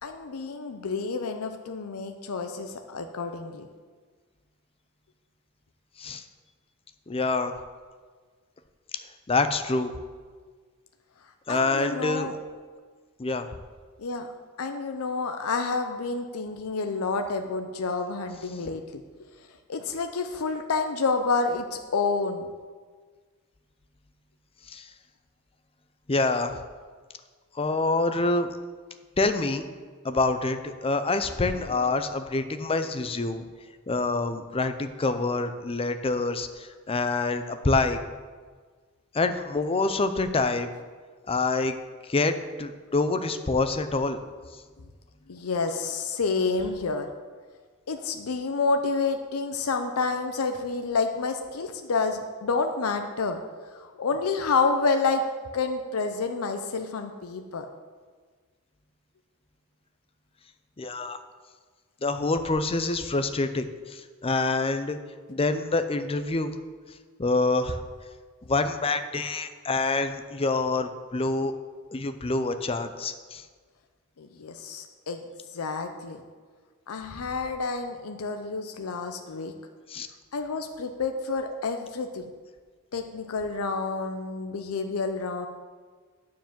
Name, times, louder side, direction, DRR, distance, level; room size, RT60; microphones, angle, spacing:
voice 1, 0.0-3.7 11.5-12.3 14.0-14.3 14.6-18.8 19.7-22.5 45.3-47.1 47.9-53.4 53.7-55.2 55.5-57.7 74.2-75.2 75.5-76.2 76.9-79.5 80.3-82.2 82.9-85.5, left 4 dB, 85° left, 6 dB, 0.6 m, -29 dB
voice 2, 7.1-7.5 9.3-9.9 11.5-12.4 13.2-13.5 24.7-24.9 26.1-26.6 27.6-28.5 29.2-29.7 30.0-33.5 33.9-38.0 39.1-40.7 41.3-41.8 42.1-44.2 60.8-61.2 62.0-65.0 65.3-66.5 67.2-67.8 68.5-71.5 71.9-73.4 79.9-80.1, left 3 dB, 25° left, 9 dB, 0.5 m, -26 dB
9.3 x 4.7 x 7.4 m, 1.5 s
head